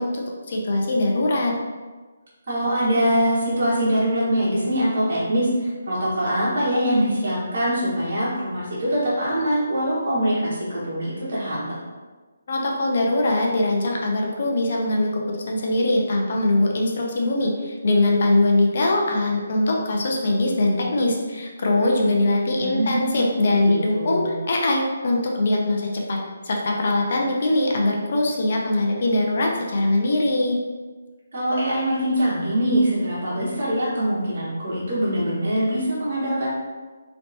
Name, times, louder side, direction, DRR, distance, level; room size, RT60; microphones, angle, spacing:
voice 1, 0.0-1.5 12.5-26.2 26.4-30.6, left 2 dB, 55° left, -1 dB, 0.6 m, -22 dB
voice 2, 2.5-11.7 22.5-24.4 31.3-36.5, equal, 55° right, -9 dB, 1.3 m, -23 dB
3.2 x 2.9 x 2.7 m, 1.3 s
hypercardioid pair, 160°, 0 cm